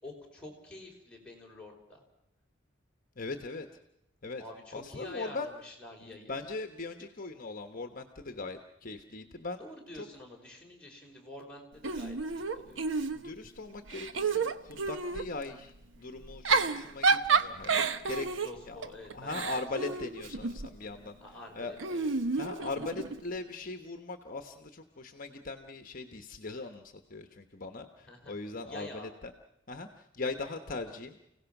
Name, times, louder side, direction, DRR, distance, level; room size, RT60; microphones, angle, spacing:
voice 1, 0.0-2.0 4.4-6.4 9.6-12.8 18.4-19.4 19.8-20.1 21.2-22.1 28.1-28.4 28.6-29.1, left 2 dB, 5° left, -2 dB, 5.1 m, -48 dB
voice 2, 3.2-3.7 4.2-4.4 4.7-5.5 6.0-9.6 9.9-10.1 13.1-18.3 18.6-18.8 19.1-21.7 22.4-29.3 29.7-31.2, left 3 dB, 45° left, 6 dB, 1.2 m, -40 dB
Giggle / Chuckle chortle, 11.8-13.5 13.9-15.3 16.2-20.7 21.8-23.2, right 4 dB, 70° right, 1.0 m, -30 dB
30.0 x 17.0 x 6.0 m, 0.85 s
head